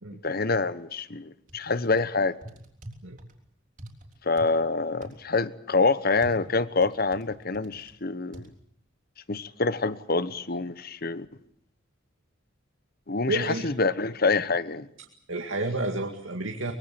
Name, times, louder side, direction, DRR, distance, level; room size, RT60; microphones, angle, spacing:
voice 1, 0.2-2.4 4.2-8.5 9.3-11.3 13.1-14.9, left 3 dB, 50° left, 1.1 m, -26 dB
sound 1, 1.5-2.0 2.4-3.3 3.8-4.5 5.0-5.2 6.2-7.9 8.3-8.5, right 1 dB, 40° right, 3.9 m, -43 dB
voice 2, 13.3-13.7 15.3-16.7, right 2 dB, 80° right, 2.2 m, -30 dB
24.5 x 22.5 x 7.7 m
head